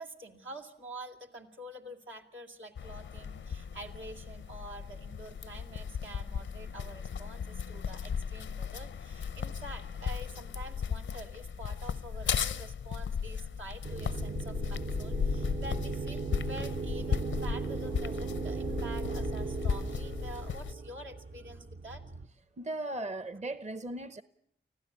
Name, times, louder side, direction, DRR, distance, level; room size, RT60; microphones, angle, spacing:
voice 1, 0.0-22.0, right 1 dB, 85° right, 2.8 m, -47 dB
sound 1, 2.7-20.7, left 7 dB, 90° left, 0.8 m, -36 dB
sound 2, 13.8-22.3, right 4 dB, 65° right, 1.4 m, -37 dB
voice 2, 22.6-24.2, right 2 dB, 35° right, 0.9 m, -37 dB
25.0 x 15.5 x 8.3 m
cardioid pair, 55°, 19 cm